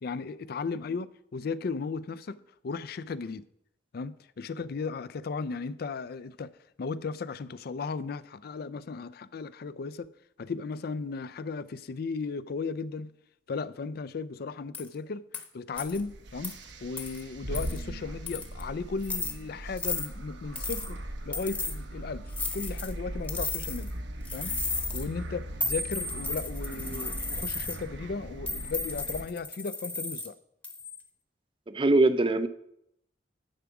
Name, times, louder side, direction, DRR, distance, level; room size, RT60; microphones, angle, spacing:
voice 1, 0.0-2.4 2.6-3.4 3.9-6.5 6.8-10.1 10.4-13.1 13.5-15.2 15.5-16.6 16.8-21.0 21.3-22.2 22.5-23.9 24.3-24.5 24.9-30.3, left 4 dB, 60° left, 0.4 m, -35 dB
sound 1, 14.7-14.9 15.3-15.4 15.8-16.0 16.4-16.5 17.0-17.2 17.5-17.8 18.3-18.6 19.0-19.3 19.8-20.1 20.6-20.9 21.3-21.8 22.3-22.9 23.3-23.9 24.2-25.0 25.6-27.8 28.5-30.3 30.6-31.0, left 3 dB, 10° left, 0.9 m, -34 dB
sound 2, 15.8-29.3, right 1 dB, 75° right, 1.0 m, -39 dB
voice 2, 31.7-32.5, right 2 dB, 30° right, 0.5 m, -22 dB
10.5 x 4.8 x 7.0 m
head